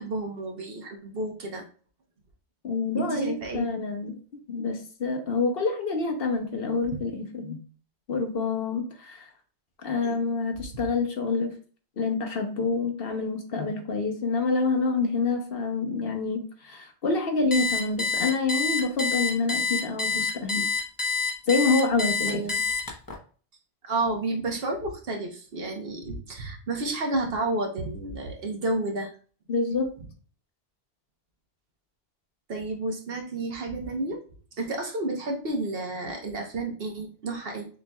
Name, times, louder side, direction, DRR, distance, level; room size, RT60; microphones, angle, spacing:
voice 1, 0.0-1.6 3.0-3.7 10.0-10.2 22.3-22.5 23.8-29.1 32.5-34.2 34.6-37.7, right 2 dB, 60° right, 3 dB, 1.1 m, -31 dB
voice 2, 2.6-4.2 4.5-7.6 8.1-9.3 9.8-11.5 12.0-20.7 21.5-22.4 29.5-29.9, left 4 dB, 60° left, 4 dB, 1.0 m, -27 dB
Alarm, 17.5-23.2, left 4 dB, 25° left, 0.7 m, -27 dB
6.6 x 3.0 x 2.2 m, 0.40 s
omnidirectional pair, 1.1 m